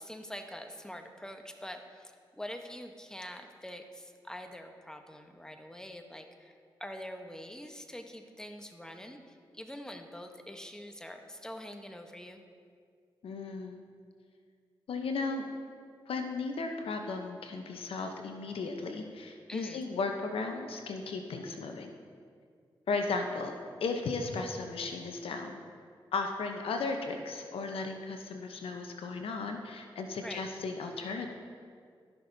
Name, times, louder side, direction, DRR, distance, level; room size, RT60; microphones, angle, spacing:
voice 1, 0.0-12.4 19.5-19.9 30.2-30.4, equal, 5° left, 5 dB, 1.0 m, -45 dB
voice 2, 13.2-13.8 14.9-15.4 16.1-21.9 22.9-23.5 23.8-25.6 26.1-31.3, left 4 dB, 75° left, 4 dB, 0.8 m, -35 dB
14.5 x 6.0 x 2.7 m, 2.1 s
supercardioid pair, 45°, 10 cm